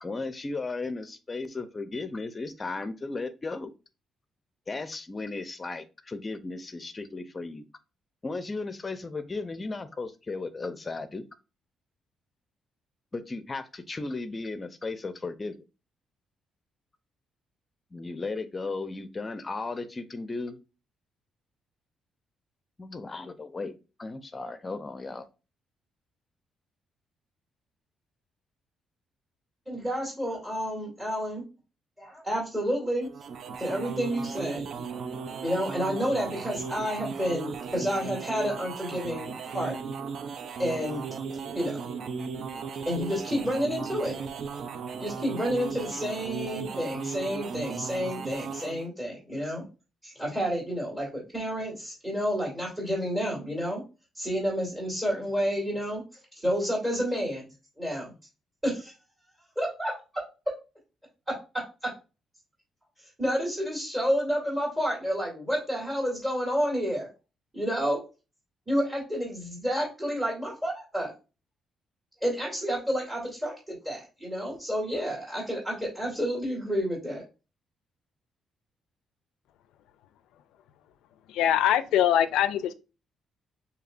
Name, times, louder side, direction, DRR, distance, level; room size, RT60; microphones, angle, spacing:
voice 1, 0.0-3.7 4.7-7.6 8.2-11.2 13.1-15.6 17.9-20.6 22.8-25.2, left 3 dB, 25° left, 0.6 m, -35 dB
voice 2, 29.7-31.4 32.0-33.1 33.6-34.6 35.4-39.8 40.6-41.0 41.5-41.8 42.8-44.2 45.0-49.7 50.0-53.8 54.2-56.0 56.4-57.4 57.8-58.1 58.6-58.9 59.6-60.2 61.3-61.4 61.8-61.9 63.2-67.1 67.5-68.0 68.7-71.1 72.2-77.2, equal, 15° right, 2.5 m, -30 dB
sound 1, 33.0-48.9, right 6 dB, 60° right, 0.5 m, -36 dB
voice 3, 81.3-82.7, left 11 dB, 90° left, 0.3 m, -23 dB
6.5 x 2.8 x 2.5 m
cardioid pair, 90°, 0 cm